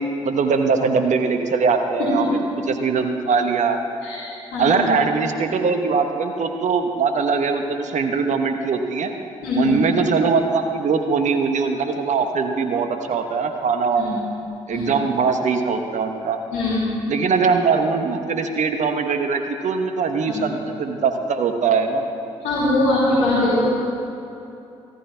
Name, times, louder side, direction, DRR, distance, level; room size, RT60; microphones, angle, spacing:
voice 1, 0.2-2.2 2.7-3.8 4.6-9.1 9.6-14.2 14.7-16.4 17.1-22.1, right 5 dB, 55° right, 6 dB, 1.0 m, -21 dB
voice 2, 9.4-9.8 14.0-14.1 14.7-14.9 16.5-16.8 20.3-20.4 22.4-23.6, left 2 dB, 70° left, -9 dB, 3.5 m, -21 dB
14.5 x 13.5 x 3.4 m, 2.8 s
hypercardioid pair, 45°, 15 cm